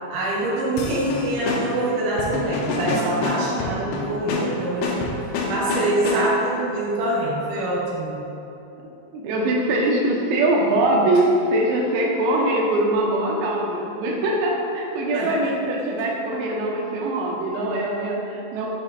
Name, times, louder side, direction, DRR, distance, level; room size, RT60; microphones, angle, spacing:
voice 1, 0.1-5.0 5.5-8.2 15.1-15.4, right 1 dB, 65° right, -6 dB, 2.2 m, -25 dB
sound 1, 0.8-6.5, left 2 dB, 80° left, 2.8 m, -27 dB
voice 2, 9.1-18.7, right 1 dB, 85° right, -2 dB, 2.9 m, -22 dB
7.3 x 6.4 x 2.4 m, 2.9 s
omnidirectional pair, 4.9 m